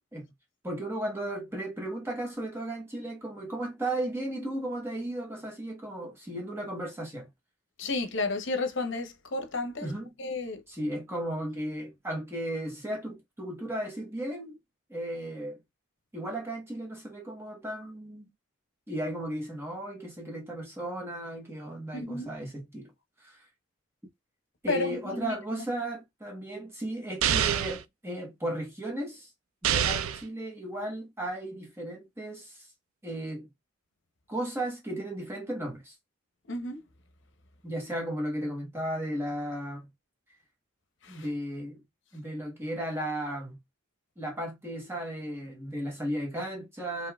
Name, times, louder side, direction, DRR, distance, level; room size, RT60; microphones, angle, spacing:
voice 1, 0.6-7.3 9.8-10.1 10.7-14.6 14.9-15.6 16.1-18.3 18.9-22.9 23.2-23.4 24.6-29.3 29.6-32.7 33.0-33.5 34.3-35.9 37.6-39.9 41.1-41.8 42.1-43.6 44.2-47.1, right 1 dB, 10° right, 1.1 m, -35 dB
voice 2, 7.8-9.9 10.2-10.6 21.9-22.3 24.7-25.4 36.5-36.8 41.0-41.3, left 2 dB, 60° left, 0.8 m, -32 dB
sound 1, 27.2-27.8 29.6-30.2, right 9 dB, 80° right, 0.4 m, -26 dB
5.3 x 3.0 x 2.3 m
head